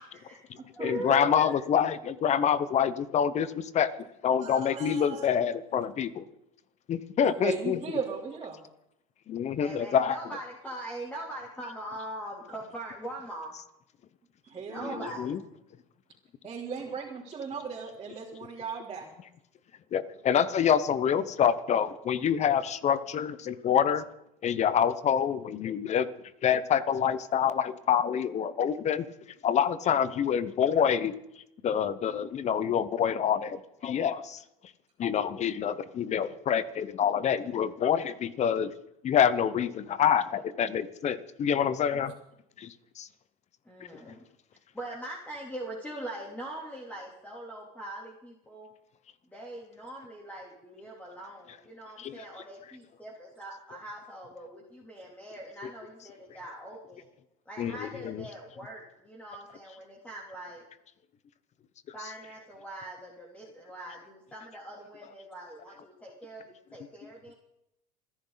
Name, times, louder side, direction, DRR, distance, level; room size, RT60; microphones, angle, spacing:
voice 1, 0.0-0.4 0.7-1.5 9.5-13.5 14.6-15.4 43.6-44.2 44.7-48.7 49.3-57.0 57.4-60.6 61.9-67.3, right 1 dB, 5° left, -3 dB, 3.3 m, -42 dB
voice 2, 0.8-3.9 4.2-6.2 6.9-7.8 9.3-10.1 15.2-15.4 19.9-24.0 24.4-26.1 26.4-29.1 29.4-31.1 31.6-34.4 35.0-38.7 39.0-42.1 42.6-43.1 52.0-52.1 57.6-58.2, left 8 dB, 35° left, 15 dB, 1.1 m, -26 dB
voice 3, 4.4-5.4 7.2-8.6 14.5-15.1 16.4-19.1, right 5 dB, 30° right, -6 dB, 3.6 m, -37 dB
28.5 x 11.0 x 4.1 m, 0.82 s
supercardioid pair, 105°, 19 cm